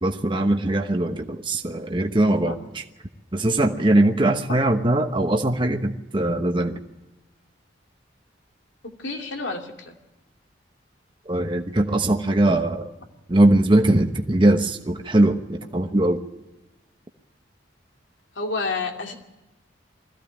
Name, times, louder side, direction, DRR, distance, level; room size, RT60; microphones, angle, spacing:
voice 1, 0.0-2.5 3.3-6.8 11.3-12.9 13.3-16.2, right 1 dB, 25° right, 4 dB, 1.0 m, -21 dB
voice 2, 8.8-9.9 18.3-19.1, left 3 dB, 90° left, 2 dB, 2.7 m, -29 dB
21.0 x 15.0 x 8.8 m, 1.1 s
head